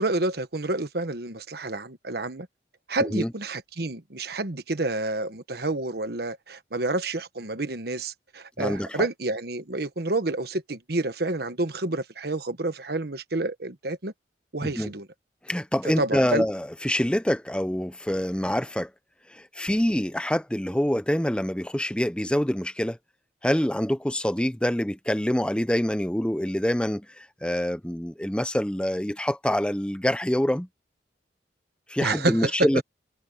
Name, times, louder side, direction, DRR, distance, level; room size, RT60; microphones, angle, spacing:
voice 1, 0.0-2.5 2.9-14.1 14.5-15.1 16.0-16.4 32.0-32.7, right 2 dB, 60° right, 1.3 m, -29 dB
voice 2, 8.6-9.1 14.6-14.9 15.4-18.9 19.3-23.0 23.4-30.7 31.9-32.8, equal, 5° left, 0.7 m, -26 dB
head